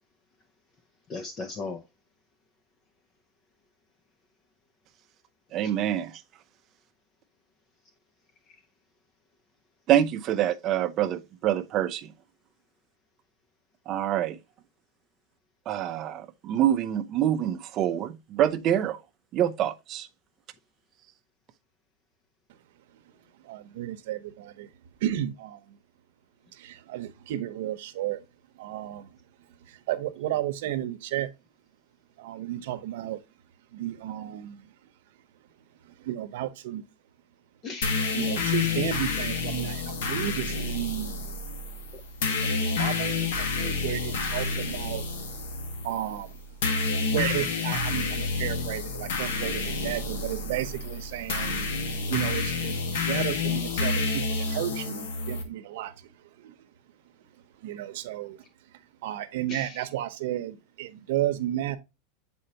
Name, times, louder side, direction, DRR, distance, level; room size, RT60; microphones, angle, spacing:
voice 1, 1.1-1.8 5.6-5.7 8.5-8.6 37.6-38.2 41.9-42.0 59.5-59.9, left 3 dB, 25° left, 0.6 m, -38 dB
voice 2, 5.5-6.2 9.9-12.1 13.9-14.4 15.7-19.0 19.3-20.1, right 11 dB, 30° right, 0.6 m, -26 dB
voice 3, 23.4-24.7 25.0-25.8 26.5-28.2 28.5-29.2 29.7-31.3 32.2-33.2 33.7-34.7 35.8-36.8 38.1-41.3 42.4-45.1 45.8-46.4 47.1-51.7 52.1-56.1 56.4-56.5 57.6-58.4 59.0-61.8, right 13 dB, 65° right, 0.8 m, -33 dB
sound 1, 37.8-55.4, left 4 dB, 80° left, 1.5 m, -29 dB
8.0 x 4.2 x 2.8 m
supercardioid pair, 165°, 0 cm